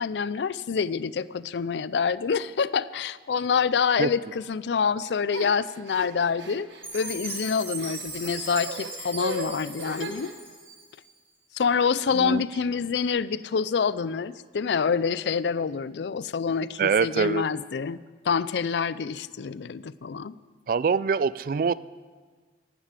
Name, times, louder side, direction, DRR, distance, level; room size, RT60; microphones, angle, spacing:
voice 1, 0.0-6.7 6.9-10.3 11.5-18.0 18.3-20.3, left 6 dB, 75° left, 18 dB, 0.4 m, -26 dB
sound 1, 5.3-10.3, right 2 dB, 85° right, 1.4 m, -38 dB
Chime, 6.8-11.1, right 2 dB, 15° right, 2.5 m, -38 dB
voice 2, 16.8-17.4 20.7-21.7, right 5 dB, 50° right, 19 dB, 0.3 m, -24 dB
11.5 x 10.0 x 9.0 m, 1.5 s
head